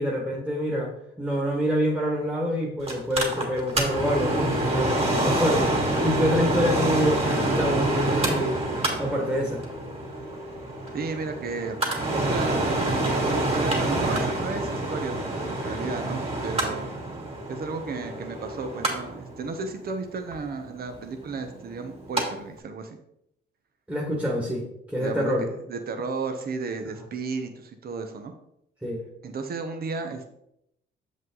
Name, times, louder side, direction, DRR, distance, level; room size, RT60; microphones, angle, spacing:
voice 1, 0.0-8.6 9.0-9.6 23.9-25.4 28.8-29.0, equal, 5° right, -2 dB, 1.6 m, -26 dB
Mechanical fan, 2.9-22.2 22.6-22.7, right 1 dB, 30° right, 2.8 m, -27 dB
voice 2, 10.9-11.9 12.1-12.8 13.1-16.9 17.5-23.0 24.9-28.3 29.2-30.4, right 4 dB, 50° right, 6 dB, 1.0 m, -33 dB
7.5 x 5.2 x 4.0 m, 0.78 s
cardioid pair, 90°, 20 cm